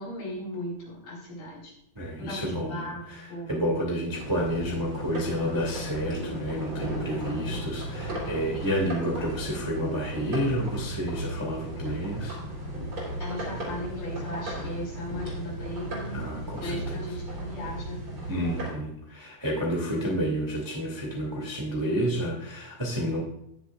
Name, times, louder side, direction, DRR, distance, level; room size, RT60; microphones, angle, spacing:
voice 1, 0.0-1.7 2.2-3.6 7.2-7.8 13.2-18.0, left 1 dB, 55° left, -5 dB, 6.4 m, -37 dB
voice 2, 1.9-12.4 16.1-16.8 18.3-23.2, equal, 15° right, -3 dB, 1.0 m, -30 dB
sound 1, 4.1-18.7, right 1 dB, 35° right, 4.4 m, -35 dB
19.0 x 7.3 x 2.4 m, 0.77 s
omnidirectional pair, 4.7 m